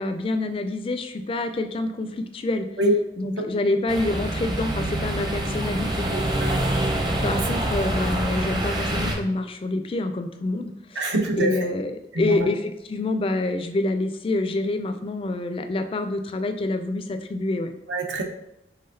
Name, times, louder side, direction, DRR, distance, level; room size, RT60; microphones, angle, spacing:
voice 1, 0.0-2.7 3.2-6.1 7.2-17.7, left 2 dB, 30° left, 8 dB, 0.3 m, -27 dB
sound 1, 3.9-9.1, right 1 dB, 25° right, 0.6 m, -26 dB
voice 2, 6.1-6.6 7.3-7.4 11.0-11.7 12.1-12.4 17.9-18.2, right 1 dB, 80° right, 3 dB, 0.8 m, -25 dB
5.6 x 3.4 x 2.7 m, 0.81 s
head